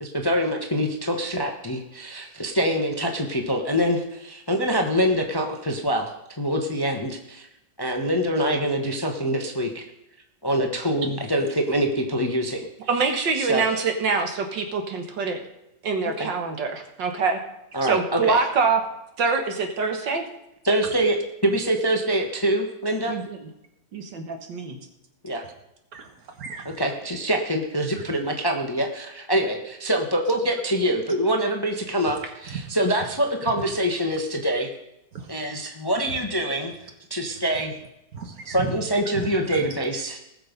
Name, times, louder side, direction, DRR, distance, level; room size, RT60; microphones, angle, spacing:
voice 1, 0.0-6.1 6.4-7.5 7.8-9.8 10.4-12.6 13.4-13.6 16.2-16.3 17.7-18.4 20.6-21.2 21.4-23.1 25.2-25.4 26.8-34.7 35.3-36.7 37.1-37.7 38.5-40.2, equal, 15° left, 0.9 m, -25 dB
voice 2, 12.9-15.4 15.8-17.4 17.9-18.8 19.2-20.2 23.1-23.4 23.9-24.8, right 4 dB, 75° right, 2.2 m, -25 dB
voice 3, 25.9-26.8 32.5-32.7 35.1-35.7 38.1-38.7 39.1-39.6, right 5 dB, 50° right, 1.9 m, -36 dB
19.5 x 6.5 x 5.2 m
omnidirectional pair, 2.0 m